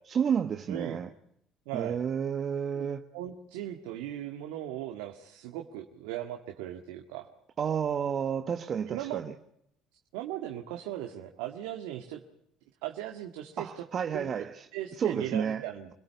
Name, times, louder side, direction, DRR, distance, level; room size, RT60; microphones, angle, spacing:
voice 1, 0.1-1.1 1.7-3.1 7.6-9.3 13.6-14.7 15.0-15.6, right 7 dB, 45° right, 1.2 m, -31 dB
voice 2, 0.7-1.0 1.7-2.0 2.7-2.9 3.1-7.3 8.9-9.3 10.1-12.2 12.8-13.8 14.1-14.3 14.7-15.9, right 12 dB, 80° right, 1.8 m, -38 dB
26.5 x 17.5 x 8.2 m
hypercardioid pair, 70°, 0 cm